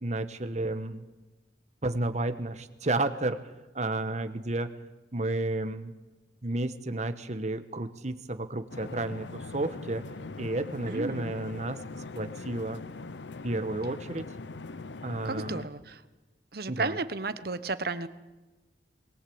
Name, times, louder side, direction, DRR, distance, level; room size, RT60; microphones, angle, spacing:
voice 1, 0.0-1.0 1.8-3.4 3.7-4.7 5.1-5.9 6.4-10.0 10.4-11.8 12.1-12.8 13.4-14.3 15.0-15.6 16.7-16.9, right 2 dB, 40° right, 9 dB, 1.2 m, -31 dB
sound 1, 8.7-15.7, left 3 dB, 75° left, 0.7 m, -41 dB
voice 2, 10.9-11.3 15.2-16.0 16.5-18.1, right 3 dB, 55° right, 13 dB, 1.1 m, -33 dB
21.5 x 18.0 x 8.7 m, 1.1 s
head